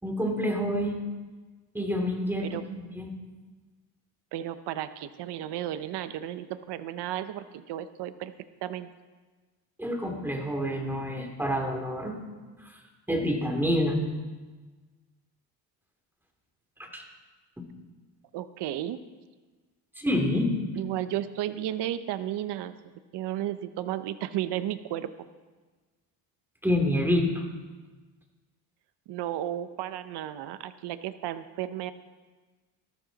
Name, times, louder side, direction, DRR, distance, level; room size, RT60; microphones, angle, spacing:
voice 1, 0.0-1.0 1.7-3.1 9.8-12.1 12.6-12.7 13.1-14.0 16.8-17.0 20.0-20.5 26.6-27.4, left 1 dB, 5° right, 2 dB, 2.8 m, -27 dB
voice 2, 4.3-8.3 8.6-8.9 18.3-19.0 20.8-22.7 23.1-25.3 29.1-31.9, right 12 dB, 65° right, 12 dB, 0.8 m, -33 dB
20.0 x 13.0 x 4.0 m, 1.3 s
cardioid pair, 120°, 44 cm